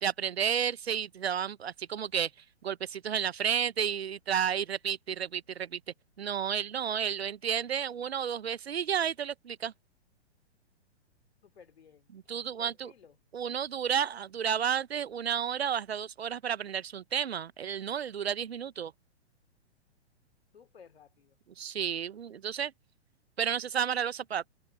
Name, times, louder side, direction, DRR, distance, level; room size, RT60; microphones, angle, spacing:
voice 1, 0.0-2.3 2.6-5.8 6.2-9.7 12.1-12.9 13.3-18.9 21.6-22.7 23.4-24.5, right 8 dB, 65° right, 0.9 m, -31 dB
voice 2, 11.4-12.1 12.6-13.2 20.5-21.4, left 6 dB, 65° left, 3.2 m, -56 dB
figure-of-eight pair, 115°, 34 cm